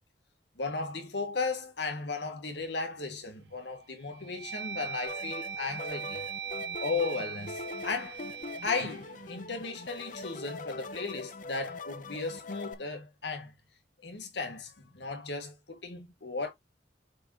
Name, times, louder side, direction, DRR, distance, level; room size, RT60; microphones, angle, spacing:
voice 1, 0.6-6.2 6.8-8.2 8.6-13.5 14.0-16.5, left 4 dB, 75° left, 1.9 m, -35 dB
sound 1, 3.1-3.5 4.0-10.2, right 7 dB, 70° right, 1.1 m, -41 dB
sound 2, 5.1-12.7, left 2 dB, 45° left, 0.9 m, -42 dB
7.2 x 4.9 x 2.9 m
head